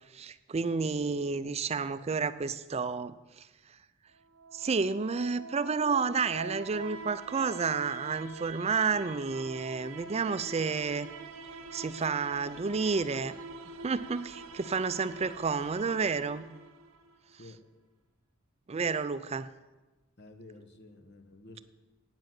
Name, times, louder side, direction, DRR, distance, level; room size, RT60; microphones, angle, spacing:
voice 1, 0.1-3.5 4.5-11.1 11.7-13.4 13.8-16.5 18.7-19.5, right 5 dB, 30° right, 14 dB, 0.4 m, -30 dB
sound 1, 4.2-17.1, right 3 dB, 75° right, 0.8 m, -45 dB
voice 2, 20.2-21.6, left 2 dB, 55° left, 7 dB, 1.1 m, -51 dB
9.2 x 7.8 x 7.6 m, 1.2 s
head